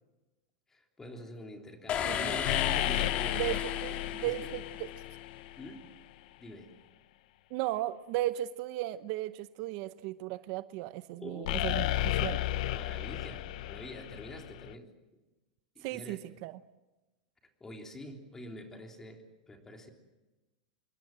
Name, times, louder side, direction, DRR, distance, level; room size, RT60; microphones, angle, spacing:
voice 1, 0.7-3.6 4.0-4.3 5.6-5.9 6.4-6.8 11.2-12.0 12.7-14.9 15.8-16.2 17.6-19.9, left 1 dB, 10° left, 3 dB, 3.4 m, -46 dB
sound 1, 1.9-5.0, left 9 dB, 30° left, 2.0 m, -35 dB
voice 2, 2.0-2.4 3.3-4.6 7.5-11.9 12.2-12.4 15.8-16.5, right 15 dB, 50° right, 13 dB, 0.8 m, -35 dB
sound 2, 2.4-5.7 11.5-14.7, left 14 dB, 65° left, 0.8 m, -33 dB
26.5 x 22.0 x 7.6 m, 1.1 s
supercardioid pair, 150°, 4 cm